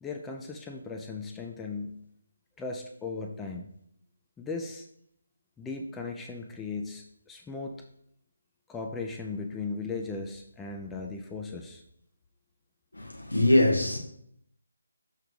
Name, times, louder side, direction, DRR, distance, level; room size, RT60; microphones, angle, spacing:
voice 1, 0.0-2.0 2.6-3.7 4.4-4.9 5.6-7.8 8.7-11.8, left 4 dB, 10° left, 0.4 m, -37 dB
voice 2, 12.9-14.0, left 1 dB, 80° left, 1.6 m, -23 dB
6.4 x 3.3 x 5.2 m
figure-of-eight pair, 150°, 0 cm